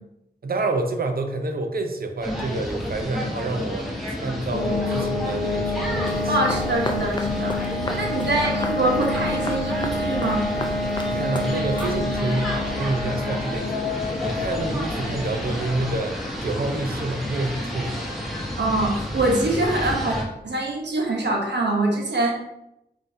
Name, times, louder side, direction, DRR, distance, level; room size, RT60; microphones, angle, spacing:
voice 1, 0.4-6.4 7.8-8.1 11.1-18.0, right 2 dB, 60° right, 5 dB, 0.5 m, -28 dB
sound 1, 2.2-20.2, equal, ahead, 1.0 m, -31 dB
sound 2, 4.5-19.1, left 2 dB, 75° left, 0.8 m, -29 dB
sound 3, 6.1-12.4, left 2 dB, 25° left, 0.4 m, -35 dB
voice 2, 6.3-10.5 18.6-20.2 20.4-22.3, right 2 dB, 90° right, 0 dB, 0.9 m, -24 dB
5.2 x 2.7 x 2.6 m, 0.84 s
wide cardioid pair, 85°, 17 cm